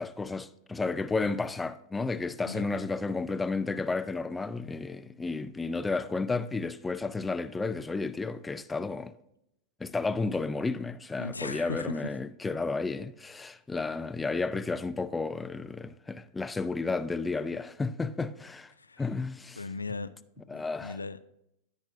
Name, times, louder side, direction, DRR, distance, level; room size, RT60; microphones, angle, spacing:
voice 1, 0.0-9.1 9.8-18.7 19.0-19.6 20.5-21.0, left 3 dB, 10° left, 0.4 m, -32 dB
voice 2, 2.4-2.9 11.2-12.0 18.8-19.1 19.6-20.1 20.5-21.2, left 4 dB, 80° left, 0.3 m, -38 dB
16.0 x 5.3 x 2.6 m
figure-of-eight pair, 90°, 0 cm